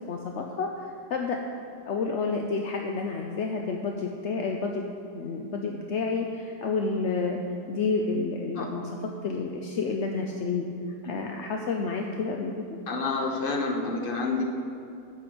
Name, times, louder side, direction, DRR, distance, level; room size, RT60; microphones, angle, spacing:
voice 1, 0.1-1.4 1.9-4.9 5.1-7.4 7.7-10.7 11.1-12.5, left 4 dB, 60° left, 2 dB, 0.8 m, -30 dB
voice 2, 12.9-14.4, left 3 dB, 35° left, 2 dB, 1.3 m, -28 dB
11.0 x 6.1 x 7.8 m, 2.6 s
omnidirectional pair, 1.9 m